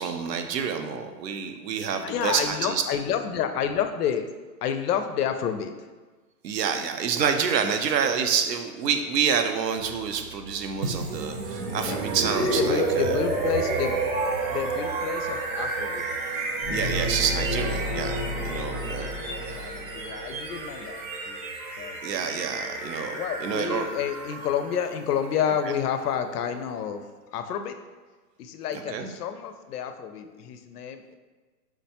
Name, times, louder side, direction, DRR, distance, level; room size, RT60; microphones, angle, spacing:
voice 1, 0.0-2.8 6.4-13.2 16.7-18.2 18.4-19.1 19.5-19.6 22.0-23.1 23.4-23.9 28.8-29.1, right 7 dB, 90° right, 6 dB, 0.6 m, -28 dB
voice 2, 2.0-4.2 4.6-5.7 11.5-12.0 12.4-14.0 14.5-16.1 17.5-17.7 18.8-18.9 19.4-21.4 21.8-22.0 23.2-27.0 27.3-27.8 28.4-31.2, left 8 dB, 70° left, 8 dB, 0.5 m, -29 dB
sound 1, 9.7-19.2, right 5 dB, 30° right, 0.7 m, -47 dB
sound 2, 10.8-26.7, right 3 dB, 60° right, 0.8 m, -31 dB
sound 3, 16.6-20.3, left 1 dB, 15° left, 0.5 m, -32 dB
4.6 x 2.2 x 2.7 m, 1.3 s
hypercardioid pair, 145°, 48 cm